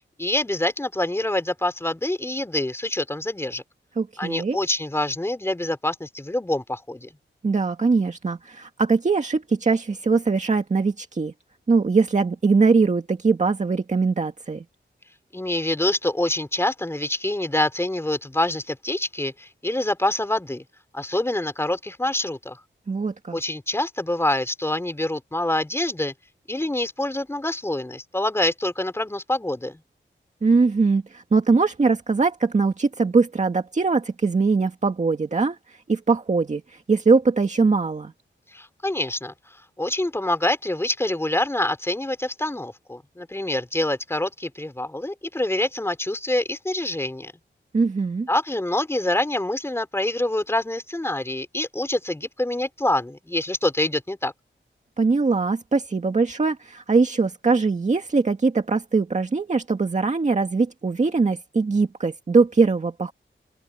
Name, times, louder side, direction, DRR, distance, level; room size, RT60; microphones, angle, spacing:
voice 1, 0.2-3.6 4.2-7.1 15.3-20.6 20.9-22.6 23.3-26.1 26.5-29.8 38.5-39.3 39.8-47.3 48.3-54.3, left 1 dB, 15° left, 3.8 m, -26 dB
voice 2, 4.0-4.6 7.4-11.3 11.7-14.6 22.9-23.4 30.4-38.1 47.7-48.3 55.0-63.1, right 4 dB, 40° right, 2.0 m, -21 dB
open air
wide cardioid pair, 160°, 20 cm